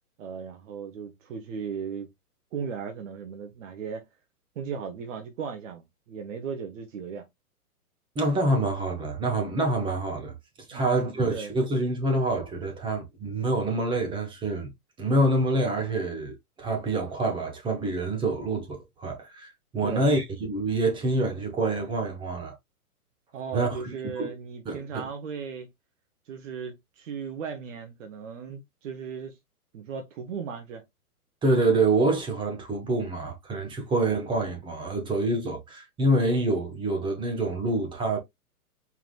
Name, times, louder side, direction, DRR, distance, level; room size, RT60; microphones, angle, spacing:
voice 1, 0.2-2.1 2.5-4.0 4.6-7.2 10.7-11.6 19.8-20.1 23.3-25.7 26.3-29.3 29.7-30.8, right 6 dB, 55° right, 1.1 m, -36 dB
voice 2, 8.2-10.3 10.7-14.7 15.0-22.5 23.5-24.3 24.7-25.1 31.4-38.2, right 2 dB, 10° right, 0.8 m, -26 dB
4.7 x 3.5 x 2.3 m
hypercardioid pair, 120°, 46 cm